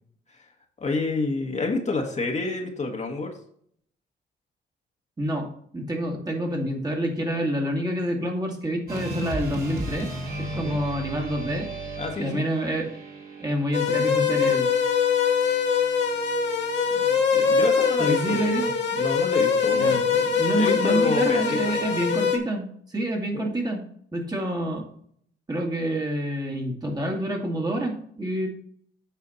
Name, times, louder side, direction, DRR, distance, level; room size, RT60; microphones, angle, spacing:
voice 1, 0.8-3.3 10.5-10.8 12.0-12.4 16.9-21.9 23.3-23.5, left 3 dB, 35° left, 2 dB, 1.5 m, -29 dB
voice 2, 5.2-10.1 10.4-11.7 12.2-12.9 13.4-14.7 18.0-18.7 19.7-20.0 20.3-23.8 24.1-24.9 25.5-28.5, right 1 dB, 20° right, 1 dB, 1.9 m, -27 dB
sound 1, 8.9-17.2, right 1 dB, 50° right, 2.5 m, -36 dB
sound 2, 13.7-22.4, left 6 dB, 65° left, 1.7 m, -23 dB
8.5 x 5.0 x 4.1 m, 0.63 s
cardioid pair, 90°, 20 cm